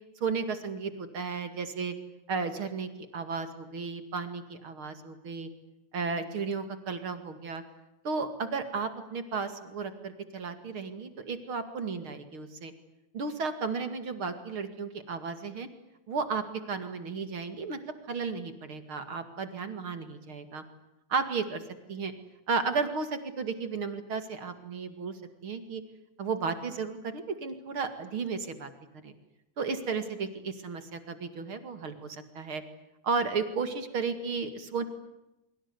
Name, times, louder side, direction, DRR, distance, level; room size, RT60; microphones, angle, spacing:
voice 1, 0.2-1.9 2.3-5.5 5.9-7.6 8.0-12.7 13.1-15.7 16.1-20.6 21.1-21.6 21.9-22.1 22.5-25.8 26.2-28.7 29.0-29.1 29.6-32.6 33.0-34.8, right 5 dB, 40° right, 9 dB, 2.5 m, -34 dB
24.5 x 24.5 x 9.7 m, 0.89 s
omnidirectional pair, 4.4 m